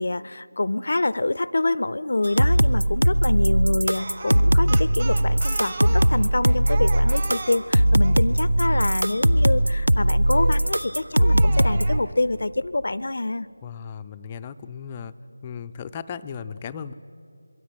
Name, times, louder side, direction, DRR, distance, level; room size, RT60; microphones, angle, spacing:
voice 1, 0.0-13.5, left 2 dB, 55° left, 19 dB, 0.6 m, -26 dB
sound 1, 2.2-12.0, right 1 dB, 80° right, 0.8 m, -20 dB
Speech, 3.9-8.2 10.3-10.7 11.2-12.0, right 3 dB, 35° right, 1.9 m, -36 dB
voice 2, 13.6-15.1 15.4-16.9, left 7 dB, 15° left, 9 dB, 0.5 m, -36 dB
26.0 x 22.0 x 9.4 m, 2.5 s
figure-of-eight pair, 165°, 0 cm